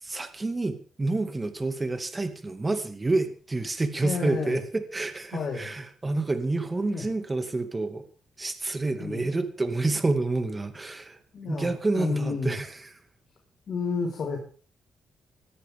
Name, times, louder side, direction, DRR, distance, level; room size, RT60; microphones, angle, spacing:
voice 1, 0.0-8.0 8.4-12.7, right 2 dB, 20° right, 2.4 m, -28 dB
voice 2, 4.0-4.6 5.3-5.7 6.9-7.0 9.0-9.2 11.3-12.6 13.7-14.4, left 4 dB, 55° left, 5.2 m, -31 dB
20.0 x 13.5 x 3.8 m
cardioid pair, 90°, 0 cm